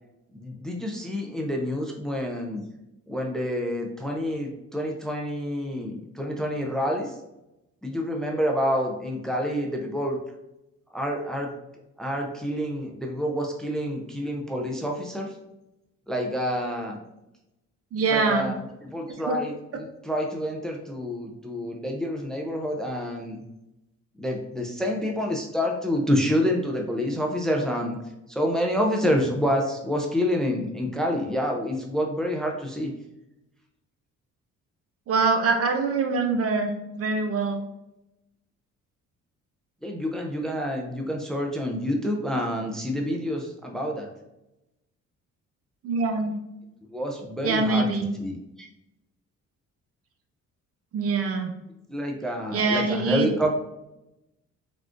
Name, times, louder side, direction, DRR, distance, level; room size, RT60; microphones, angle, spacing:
voice 1, 0.3-2.6 3.1-7.2 7.8-10.2 10.9-11.5 12.0-15.3 16.1-17.0 18.1-23.4 24.2-28.0 28.3-32.9 39.8-44.1 46.9-47.9 48.2-48.7 51.9-53.5, equal, ahead, 1 dB, 0.4 m, -28 dB
voice 2, 17.9-18.5 19.3-19.4 35.1-36.7 37.0-37.6 45.8-46.4 47.4-48.1 50.9-51.6 52.5-53.3, right 4 dB, 50° right, 5 dB, 0.5 m, -24 dB
3.5 x 2.3 x 2.5 m, 0.91 s
cardioid pair, 90°, 30 cm